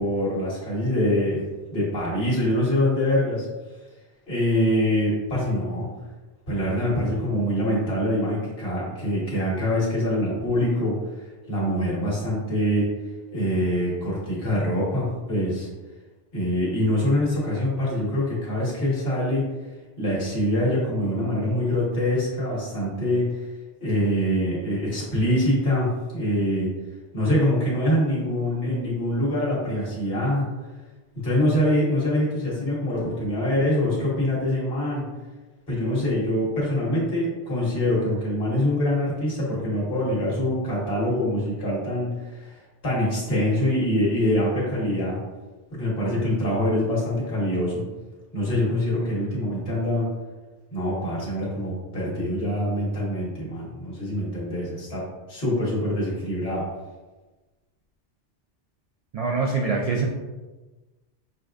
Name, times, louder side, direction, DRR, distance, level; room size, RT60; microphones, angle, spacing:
voice 1, 0.0-3.5 4.3-5.9 6.5-12.9 13.3-15.7 16.3-19.4 20.0-23.3 23.8-26.7 27.1-30.5 31.2-35.0 35.7-42.6 42.8-45.2 45.7-47.8 48.3-50.1 50.7-56.6, left 1 dB, 60° left, -7 dB, 1.7 m, -24 dB
voice 2, 59.1-60.1, right 4 dB, 65° right, -1 dB, 0.3 m, -24 dB
6.6 x 2.3 x 2.5 m, 1.2 s
omnidirectional pair, 1.2 m